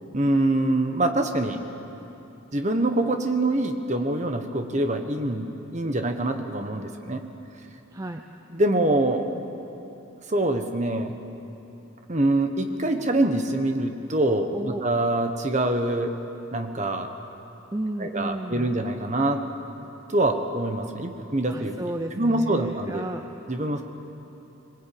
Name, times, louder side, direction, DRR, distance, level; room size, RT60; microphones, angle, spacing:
voice 1, 0.1-1.6 2.5-7.2 8.5-9.2 10.3-11.1 12.1-16.2 16.5-17.1 18.0-19.4 20.1-21.8 22.1-23.0 23.5-23.8, right 1 dB, 35° right, 6 dB, 1.3 m, -24 dB
voice 2, 7.9-8.2 14.5-14.8 17.7-18.7 21.5-23.2, right 1 dB, 15° right, 5 dB, 0.6 m, -32 dB
20.5 x 20.0 x 8.8 m, 3.0 s
head